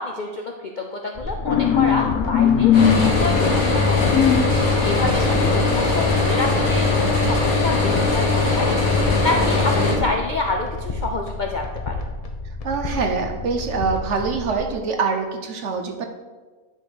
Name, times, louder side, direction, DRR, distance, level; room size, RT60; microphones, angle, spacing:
voice 1, 0.0-2.9 3.2-4.1 4.6-8.7 9.0-12.0, left 3 dB, 55° left, 1 dB, 0.5 m, -28 dB
sound 1, 1.1-14.5, left 2 dB, 30° left, 0.8 m, -31 dB
sound 2, 1.5-6.3, left 8 dB, 85° left, 1.1 m, -21 dB
sound 3, 2.7-10.0, left 3 dB, 70° left, 2.1 m, -20 dB
voice 2, 5.0-5.4 9.8-10.1 12.6-16.0, right 4 dB, 60° right, 5 dB, 1.0 m, -25 dB
10.0 x 4.1 x 4.9 m, 1.3 s
omnidirectional pair, 1.5 m